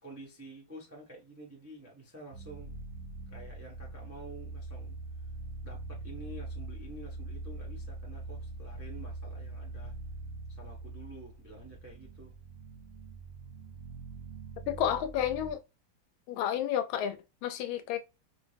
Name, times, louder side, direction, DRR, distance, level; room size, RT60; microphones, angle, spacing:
voice 1, 0.0-2.7 3.3-5.0 5.6-9.9 10.5-12.3, right 2 dB, 15° right, 0.5 m, -49 dB
sound 1, 2.3-15.5, right 2 dB, 60° right, 0.9 m, -43 dB
voice 2, 14.7-15.6 16.3-17.2 17.4-18.0, left 10 dB, 85° left, 1.4 m, -30 dB
5.2 x 2.0 x 3.3 m
omnidirectional pair, 2.2 m